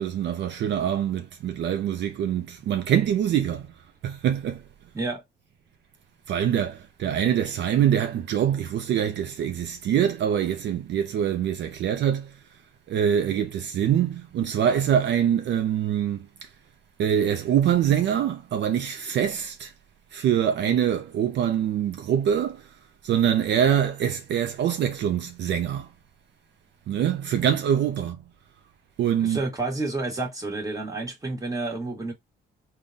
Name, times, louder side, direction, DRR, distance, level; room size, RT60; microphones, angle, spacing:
voice 1, 0.0-3.7 4.0-4.6 6.3-12.3 12.9-16.5 17.0-19.7 20.1-22.7 23.0-25.9 26.9-28.2 29.0-29.4, right 9 dB, 65° right, 0.4 m, -24 dB
voice 2, 29.2-32.1, right 2 dB, 15° right, 1.2 m, -30 dB
3.6 x 2.2 x 2.6 m
cardioid pair, 90°, 20 cm